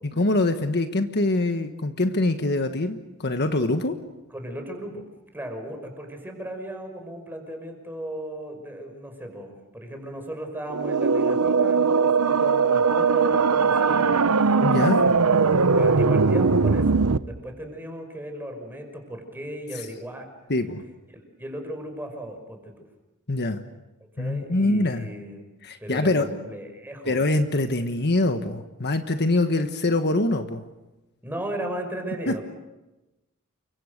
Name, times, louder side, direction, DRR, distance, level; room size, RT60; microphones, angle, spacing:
voice 1, 0.2-4.0 14.6-15.0 20.5-20.8 23.3-23.6 24.2-25.1 25.6-26.2 27.1-30.6 32.3-32.4, left 2 dB, 50° left, 7 dB, 1.4 m, -24 dB
voice 2, 4.3-5.0 5.3-14.3 15.0-15.3 15.8-20.3 21.1-22.9 24.2-25.4 25.8-27.2 31.2-32.4, right 1 dB, 10° right, 4 dB, 5.5 m, -36 dB
sound 1, 10.7-17.2, right 4 dB, 80° right, 0.9 m, -20 dB
29.5 x 24.5 x 6.7 m, 1.0 s
head